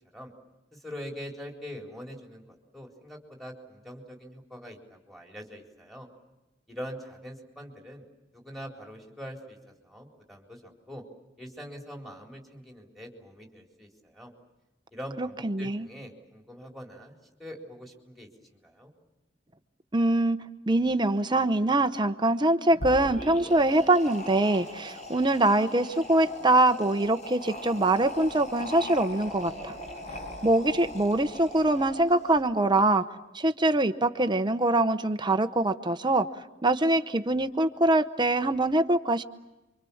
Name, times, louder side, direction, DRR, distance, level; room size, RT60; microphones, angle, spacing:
voice 1, 0.7-6.1 6.7-8.0 8.3-11.0 11.4-14.3 14.9-18.9, equal, ahead, 0 dB, 4.2 m, -43 dB
voice 2, 15.2-15.9 19.9-20.4 20.7-29.7 30.4-33.0 33.3-36.3 36.6-39.2, right 2 dB, 25° right, 9 dB, 0.9 m, -24 dB
sound 1, 22.7-32.4, left 1 dB, 40° left, 5.5 m, -40 dB
28.5 x 25.0 x 7.2 m, 1.0 s
head